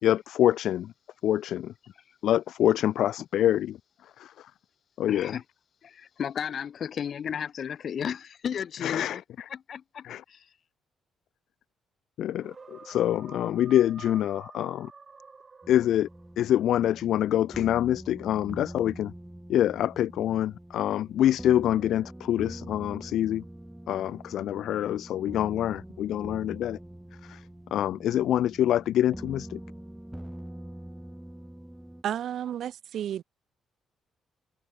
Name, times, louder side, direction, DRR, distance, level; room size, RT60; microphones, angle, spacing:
voice 1, 0.0-0.9 1.2-1.7 2.2-3.8 4.0-4.5 5.0-5.4 8.8-9.2 10.0-10.2 12.2-14.9 15.7-16.1 16.4-19.1 19.5-23.4 23.9-26.8 27.2-29.6, left 12 dB, 75° left, 1.7 m, -26 dB
voice 2, 5.1-5.4 5.8-9.2 9.5-10.5, left 8 dB, 55° left, 1.8 m, -34 dB
sound 1, 12.3-16.4, right 4 dB, 35° right, 7.7 m, -49 dB
sound 2, 15.6-32.0, right 1 dB, 5° right, 4.2 m, -44 dB
voice 3, 32.0-33.2, right 10 dB, 70° right, 1.8 m, -32 dB
cardioid pair, 85°, 0 cm